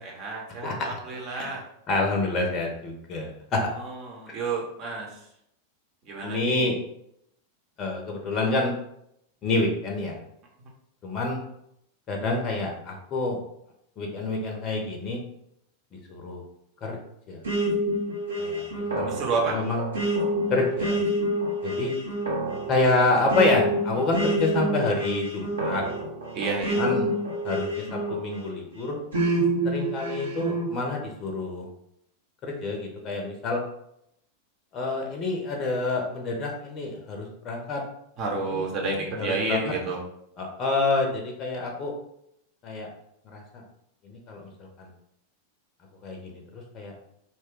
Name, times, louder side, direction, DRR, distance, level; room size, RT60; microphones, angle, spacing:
voice 1, 0.0-1.6 3.8-5.2 6.0-6.7 19.1-19.6 26.3-26.8 38.2-40.0, right 3 dB, 35° right, -1 dB, 0.9 m, -30 dB
voice 2, 1.9-3.6 6.2-6.8 7.8-8.7 9.4-10.2 11.0-11.4 12.1-13.4 14.0-15.2 16.1-16.4 16.8-17.0 17.3-17.4 18.4-19.2 19.5-19.8 20.5-21.0 21.6-21.9 22.7-25.8 26.7-27.1 27.4-29.0 29.6-31.7 32.4-33.6 34.7-37.8 38.5-38.7 39.2-39.7 40.4-41.9 42.6-42.9 43.3-43.6 44.0-44.5 44.8-44.9 46.0-46.9, left 2 dB, 30° left, 2 dB, 0.6 m, -27 dB
Back Tracking(No Drums), 17.4-28.5 29.1-30.7, right 1 dB, 70° right, 0.8 m, -27 dB
2.6 x 2.2 x 3.6 m, 0.76 s
figure-of-eight pair, 90°, 0 cm